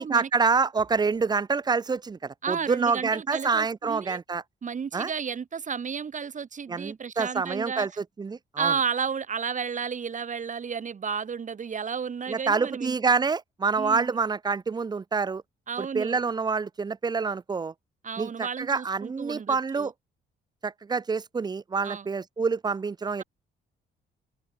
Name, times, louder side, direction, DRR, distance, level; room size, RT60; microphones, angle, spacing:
voice 1, 0.0-4.4 4.9-5.1 6.7-8.7 12.3-15.4 15.8-17.7 18.2-19.9 20.6-23.2, right 5 dB, 20° right, 0.5 m, -27 dB
voice 2, 2.4-4.2 4.6-7.9 8.6-12.9 13.8-14.2 15.7-16.2 18.0-19.9 21.8-22.1, right 6 dB, 40° right, 1.5 m, -32 dB
cardioid pair, 90°, 20 cm